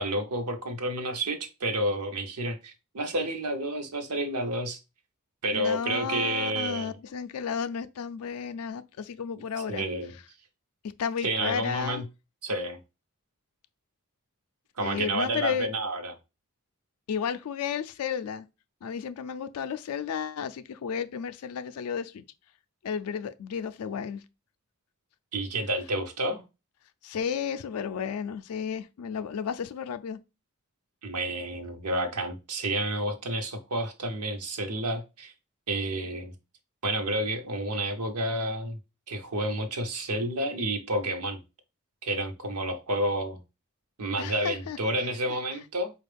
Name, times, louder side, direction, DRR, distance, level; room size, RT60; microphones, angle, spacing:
voice 1, 0.0-4.8 5.4-6.9 9.7-10.2 11.2-12.1 12.4-12.8 14.8-16.1 25.3-26.4 31.0-35.3 35.7-36.3 36.8-38.8 39.1-41.4 42.0-43.4 44.0-45.9, right 1 dB, 90° right, 0.8 m, -30 dB
voice 2, 5.5-9.8 11.0-12.0 14.8-15.7 17.1-18.5 18.8-22.2 22.8-24.2 27.0-30.2 44.2-44.8 45.3-45.4, left 7 dB, 70° left, 0.4 m, -33 dB
4.4 x 2.3 x 3.3 m
head